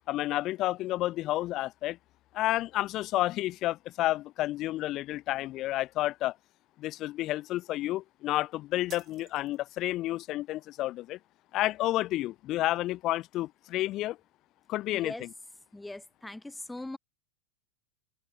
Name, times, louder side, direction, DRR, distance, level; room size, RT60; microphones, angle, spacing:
voice 1, 0.1-2.0 2.3-6.3 6.8-11.2 11.5-14.2 14.7-15.1, left 16 dB, 35° left, 1.1 m, -30 dB
sound 1, 8.9-9.9, right 11 dB, 30° right, 5.8 m, -52 dB
voice 2, 14.9-15.3 15.7-17.0, left 2 dB, 5° left, 1.9 m, -41 dB
figure-of-eight pair, 90°, 0 cm